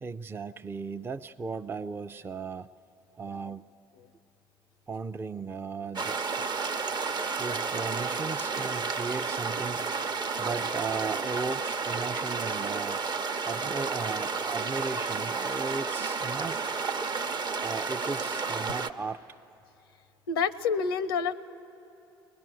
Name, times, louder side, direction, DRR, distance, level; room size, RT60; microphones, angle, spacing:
voice 1, 0.0-2.7 3.2-3.6 4.9-6.2 7.4-9.9 10.4-13.1 13.4-16.6 17.6-19.2, right 4 dB, 20° right, 9 dB, 0.4 m, -36 dB
sound 1, 6.0-18.9, right 4 dB, 35° right, 0.8 m, -31 dB
voice 2, 20.3-21.3, left 5 dB, 85° left, 14 dB, 0.5 m, -28 dB
21.0 x 20.0 x 7.7 m, 2.8 s
hypercardioid pair, 60°, 12 cm